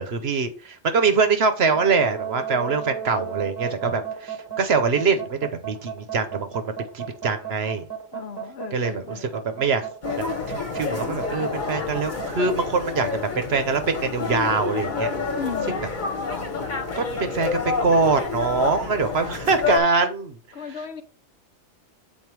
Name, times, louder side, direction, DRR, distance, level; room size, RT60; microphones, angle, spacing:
voice 1, 0.0-7.9 8.7-9.9 10.2-10.3 10.7-15.1 16.9-20.4, right 4 dB, 55° right, 1.0 m, -23 dB
sound 1, 1.7-12.6, right 8 dB, 20° right, 1.0 m, -34 dB
voice 2, 8.1-9.4 15.3-15.8 20.5-21.0, left 6 dB, 60° left, 0.9 m, -35 dB
sound 2, 10.0-19.8, left 4 dB, 40° left, 1.3 m, -28 dB
7.5 x 4.3 x 4.6 m
omnidirectional pair, 1.3 m